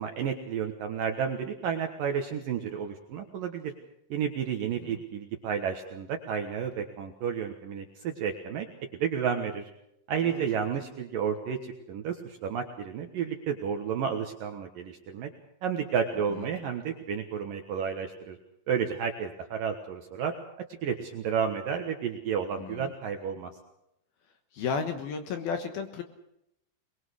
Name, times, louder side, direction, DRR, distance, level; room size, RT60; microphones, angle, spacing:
voice 1, 0.0-3.7 4.1-8.7 8.9-9.7 10.1-15.3 15.6-18.4 18.7-20.3 20.8-23.5, right 7 dB, 65° right, 5 dB, 2.3 m, -31 dB
voice 2, 22.6-22.9 24.5-26.0, left 5 dB, 65° left, 7 dB, 2.8 m, -33 dB
22.0 x 22.0 x 6.4 m, 0.78 s
omnidirectional pair, 5.5 m